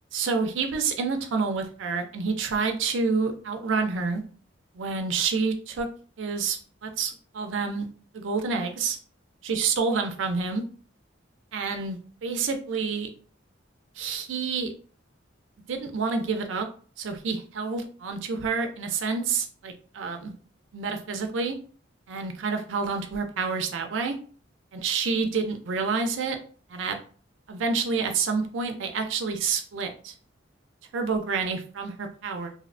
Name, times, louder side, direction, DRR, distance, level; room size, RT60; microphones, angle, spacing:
voice 1, 0.1-4.2 4.7-5.9 6.2-7.9 8.1-9.0 9.5-10.6 11.5-13.1 14.0-14.7 15.7-16.7 17.0-20.3 20.7-21.5 22.1-24.1 24.8-26.4 26.7-27.0 27.5-30.1 30.9-32.5, right 4 dB, 80° right, 5 dB, 0.4 m, -28 dB
2.7 x 2.0 x 2.5 m, 0.42 s
head